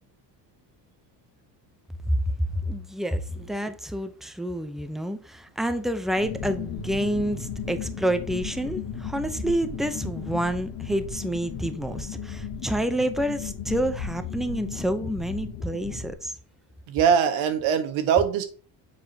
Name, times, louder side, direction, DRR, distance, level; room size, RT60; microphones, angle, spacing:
voice 1, 2.1-16.4, right 1 dB, ahead, 0.6 m, -28 dB
sound 1, 6.2-16.1, left 6 dB, 45° left, 1.6 m, -36 dB
voice 2, 16.9-18.4, right 7 dB, 80° right, 1.3 m, -22 dB
7.3 x 4.9 x 2.8 m
cardioid pair, 105°, 48 cm